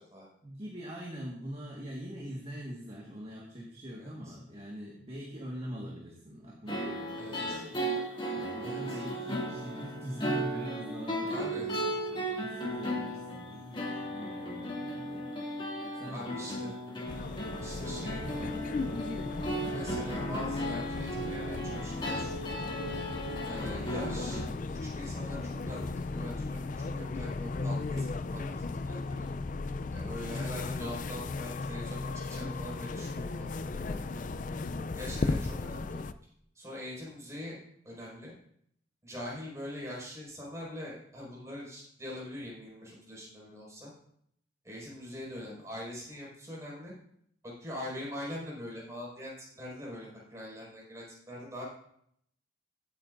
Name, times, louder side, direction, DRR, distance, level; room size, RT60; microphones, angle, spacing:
voice 1, 0.4-7.9 8.3-15.3 15.9-16.7, equal, 30° right, -2 dB, 1.6 m, -43 dB
voice 2, 4.0-4.4 7.2-7.7 8.6-9.1 11.3-11.7 16.1-16.8 17.6-18.8 19.7-22.6 23.4-24.4 24.8-29.3 29.9-34.3 34.9-36.0 36.6-37.6 37.8-38.3 39.0-43.9 44.6-46.9 47.4-51.6, left 1 dB, 15° right, -5 dB, 5.2 m, -43 dB
sound 1, 6.7-24.4, equal, 25° left, 2.1 m, -36 dB
sound 2, 17.1-36.1, left 3 dB, 40° left, 0.4 m, -36 dB
16.0 x 8.9 x 2.6 m, 0.68 s
head